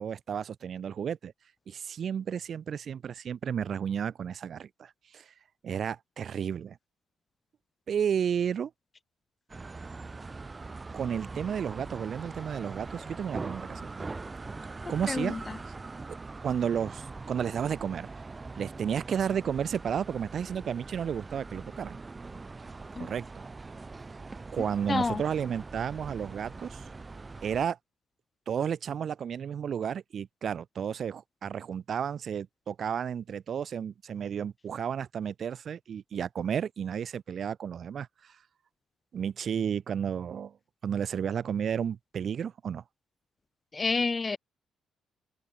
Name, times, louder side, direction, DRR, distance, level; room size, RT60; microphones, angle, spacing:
voice 1, 0.0-1.3 1.7-5.3 5.6-6.8 7.9-8.7 10.9-14.1 14.9-15.4 16.4-18.1 18.6-22.0 23.0-23.4 24.5-26.8 27.4-27.8 28.5-38.3 39.1-40.5 40.8-42.8, right 8 dB, 55° right, 0.6 m, -32 dB
sound 1, 9.5-27.7, right 3 dB, 25° right, 2.0 m, -42 dB
voice 2, 15.1-15.5 23.0-23.1 24.5-25.2 43.7-44.4, left 4 dB, 30° left, 0.3 m, -30 dB
cardioid pair, 90°, 0 cm